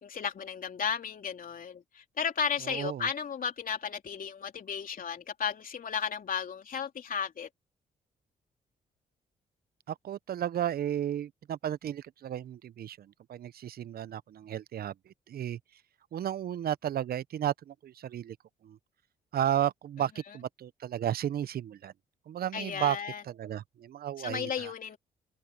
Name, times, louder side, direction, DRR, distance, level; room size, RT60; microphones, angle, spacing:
voice 1, 0.0-7.5 22.5-23.2 24.2-25.0, left 7 dB, 50° left, 3.3 m, -34 dB
voice 2, 2.6-3.1 9.9-15.6 16.1-18.4 18.6-18.8 19.3-21.9 22.3-23.0 23.2-24.7, right 10 dB, 60° right, 1.0 m, -33 dB
hypercardioid pair, 45°, 18 cm